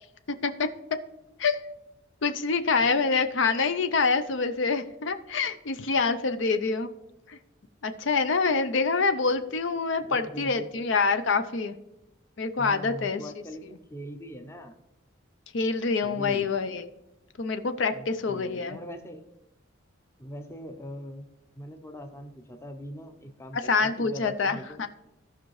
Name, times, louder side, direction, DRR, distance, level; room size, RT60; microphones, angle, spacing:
voice 1, 2.2-6.9 7.3-7.4 7.8-11.7 12.4-13.2 15.5-16.8 17.4-18.8 23.6-24.9, left 4 dB, 60° left, 9 dB, 0.5 m, -26 dB
voice 2, 10.0-10.7 12.6-14.8 16.0-16.5 17.9-19.3 20.2-21.3 21.6-24.9, equal, 10° left, 5 dB, 0.6 m, -41 dB
15.5 x 5.5 x 3.2 m, 0.89 s
head